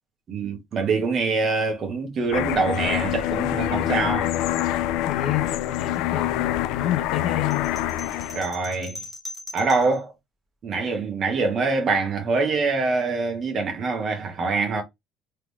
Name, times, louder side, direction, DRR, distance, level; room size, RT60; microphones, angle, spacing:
voice 1, 0.3-4.3 8.3-9.0 9.5-10.1 10.6-14.8, right 4 dB, 30° right, 1.5 m, -24 dB
sound 1, 2.3-8.5, left 13 dB, 65° left, 0.4 m, -26 dB
voice 2, 5.1-7.7, left 12 dB, 50° left, 1.0 m, -28 dB
sound 2, 7.5-10.0, left 2 dB, ahead, 1.8 m, -39 dB
3.7 x 3.3 x 3.5 m
cardioid pair, 180°, 0 cm